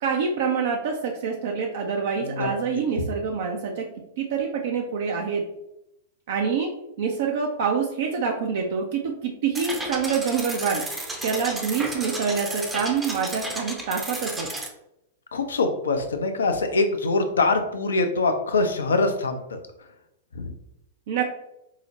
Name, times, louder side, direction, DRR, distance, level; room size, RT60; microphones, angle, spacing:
voice 1, 0.0-3.9 4.2-5.4 6.3-6.7 7.0-10.9 11.2-14.5 21.1-21.2, right 6 dB, 55° right, 1 dB, 0.4 m, -26 dB
sound 1, 9.5-14.7, right 1 dB, 10° right, 0.6 m, -33 dB
voice 2, 15.3-19.6 20.3-20.5, left 3 dB, 70° left, 6 dB, 0.5 m, -24 dB
4.7 x 2.1 x 2.8 m, 0.85 s
figure-of-eight pair, 100°, 0 cm